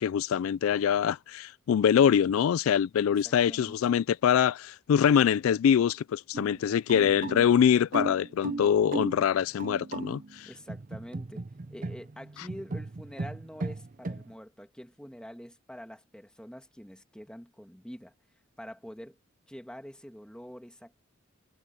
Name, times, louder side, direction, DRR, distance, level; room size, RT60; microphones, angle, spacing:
voice 1, 0.0-10.5, left 8 dB, 80° left, 0.3 m, -24 dB
voice 2, 3.1-3.7 10.5-11.4 11.7-18.1 18.6-19.2 19.5-21.0, equal, 5° left, 2.3 m, -46 dB
sound 1, 6.3-14.3, right 3 dB, 40° right, 0.6 m, -37 dB
head